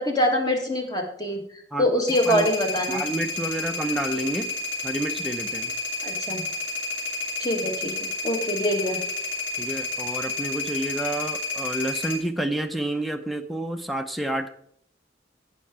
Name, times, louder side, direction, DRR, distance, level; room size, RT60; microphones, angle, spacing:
voice 1, 0.0-3.1 6.0-6.4 7.4-9.0, equal, 20° left, 2 dB, 1.7 m, -25 dB
sound 1, 2.1-12.2, left 3 dB, 80° left, 3.3 m, -30 dB
voice 2, 2.9-4.5 4.8-5.7 9.6-14.5, right 1 dB, ahead, 7 dB, 0.6 m, -29 dB
17.0 x 5.7 x 3.7 m, 0.68 s
head